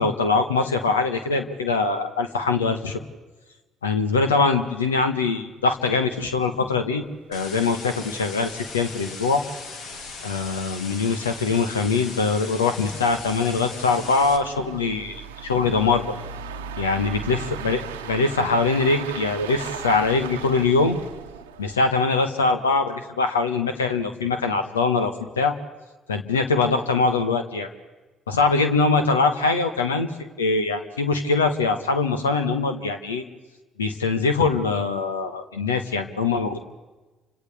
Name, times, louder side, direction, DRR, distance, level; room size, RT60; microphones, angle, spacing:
voice 1, 0.0-3.0 3.8-7.0 7.3-9.4 10.2-16.1 16.8-21.0 21.6-25.5 26.1-27.7 28.3-33.2 33.8-36.6, left 4 dB, 90° left, 8 dB, 1.1 m, -23 dB
sound 1, 5.7-5.8 6.1-6.2 6.6-6.7 7.0-7.1 7.7-22.1, right 8 dB, 85° right, 1.0 m, -39 dB
sound 2, 7.3-14.4, left 4 dB, 65° left, 1.8 m, -38 dB
29.0 x 26.5 x 3.4 m, 1.2 s
hypercardioid pair, 50°, 0 cm